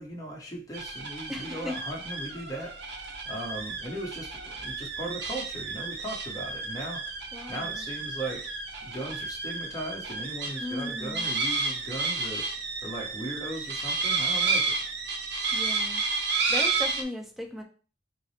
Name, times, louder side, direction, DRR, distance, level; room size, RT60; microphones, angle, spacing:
voice 1, 0.0-7.1 7.5-8.5 8.8-12.5 12.8-14.9, right 1 dB, 20° left, 0.9 m, -38 dB
sound 1, 0.7-17.0, right 4 dB, 60° right, 0.7 m, -31 dB
voice 2, 1.3-1.8 7.3-7.9 10.6-11.3 15.5-16.0 16.5-17.6, left 1 dB, ahead, 0.6 m, -37 dB
5.7 x 2.0 x 3.1 m
head